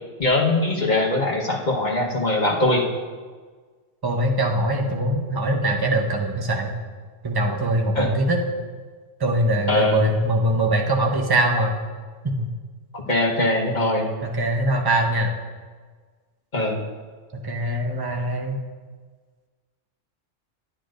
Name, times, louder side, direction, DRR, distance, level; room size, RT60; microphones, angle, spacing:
voice 1, 0.2-2.8 7.9-8.1 9.7-10.0 12.9-14.1 16.5-16.8, left 2 dB, 40° left, -2 dB, 1.3 m, -21 dB
voice 2, 4.0-6.7 7.2-8.4 9.2-11.7 12.2-12.5 14.2-15.3 17.3-18.5, right 1 dB, 20° right, 2 dB, 0.7 m, -22 dB
11.5 x 10.0 x 2.5 m, 1.5 s
omnidirectional pair, 1.3 m